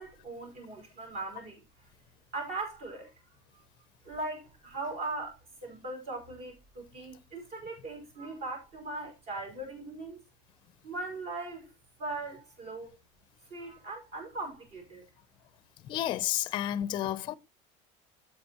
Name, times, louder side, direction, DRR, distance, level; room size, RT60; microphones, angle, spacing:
voice 1, 0.0-1.6 2.3-3.1 3.5-3.6 4.0-10.2 10.8-11.7 12.0-13.0 13.5-15.0, right 2 dB, 50° right, 5.0 m, -39 dB
voice 2, 15.9-17.4, left 12 dB, 30° left, 0.5 m, -31 dB
13.5 x 8.2 x 2.9 m
cardioid pair, 175°, 16 cm